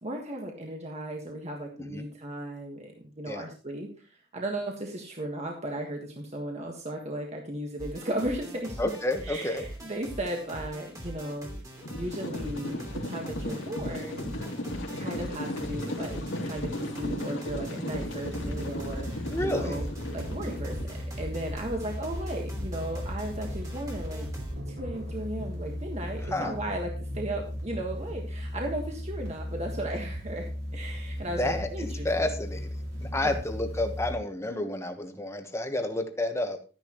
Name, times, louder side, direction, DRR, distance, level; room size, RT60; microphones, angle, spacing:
voice 1, 0.0-3.9 4.3-8.9 9.2-11.5 11.9-14.4 15.0-19.8 20.1-24.3 24.7-32.1 33.2-33.3, right 1 dB, 35° right, 1 dB, 1.6 m, -36 dB
sound 1, 7.8-24.6, equal, 15° right, 2.8 m, -42 dB
voice 2, 8.8-9.6 19.3-19.8 26.2-26.5 31.3-36.6, left 1 dB, 15° left, 6 dB, 1.3 m, -30 dB
sound 2, 11.8-20.9, left 1 dB, 75° left, 2.6 m, -36 dB
sound 3, 18.2-34.1, equal, 65° right, 5.1 m, -36 dB
12.5 x 10.0 x 3.1 m, 0.37 s
head